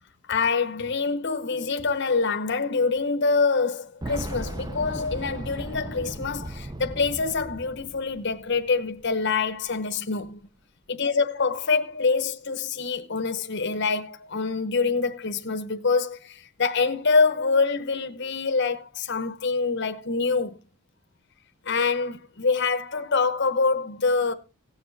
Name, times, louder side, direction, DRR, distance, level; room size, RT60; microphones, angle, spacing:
voice 1, 0.3-10.4 10.9-20.6 21.6-24.3, left 4 dB, 50° left, 0.9 m, -25 dB
Boom, 4.0-8.8 9.0-9.1 10.2-10.3, right 1 dB, 20° right, 0.7 m, -36 dB
17.0 x 7.0 x 4.1 m
head